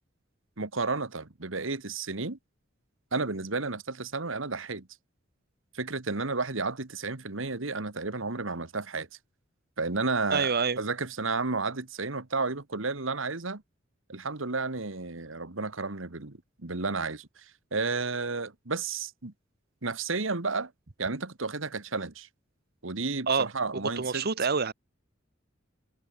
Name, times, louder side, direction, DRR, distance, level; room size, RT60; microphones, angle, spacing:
voice 1, 0.6-2.4 3.1-4.9 5.7-9.1 9.8-13.6 14.1-17.4 17.7-19.3 19.8-20.7 21.0-22.3 22.8-24.3, right 3 dB, 70° right, 1.8 m, -32 dB
voice 2, 10.3-10.8 23.3-23.5 23.7-24.7, right 5 dB, 50° right, 1.2 m, -27 dB
head